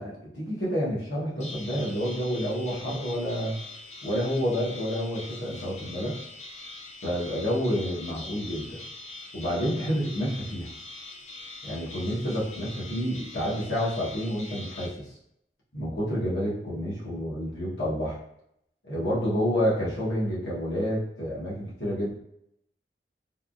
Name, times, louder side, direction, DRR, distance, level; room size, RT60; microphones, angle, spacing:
voice 1, 0.0-3.6 4.0-6.2 7.0-8.8 9.3-10.7 11.6-15.0 15.7-18.2 18.8-22.1, equal, 80° left, -7 dB, 1.2 m, -29 dB
sound 1, 1.4-14.9, left 2 dB, 40° left, 0.4 m, -43 dB
3.4 x 2.4 x 2.5 m, 0.76 s
head